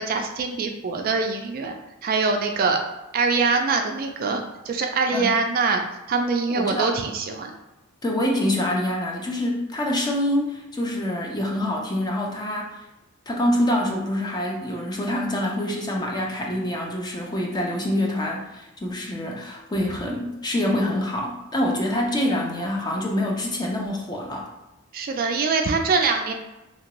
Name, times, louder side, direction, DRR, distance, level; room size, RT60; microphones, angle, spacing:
voice 1, 0.0-1.7 2.0-2.8 3.1-5.8 6.1-7.5 24.9-26.3, right 4 dB, 45° right, 4 dB, 0.3 m, -23 dB
voice 2, 6.5-6.9 8.0-12.8 13.3-24.5, left 1 dB, 20° left, -1 dB, 0.5 m, -26 dB
2.9 x 2.5 x 2.9 m, 0.96 s
head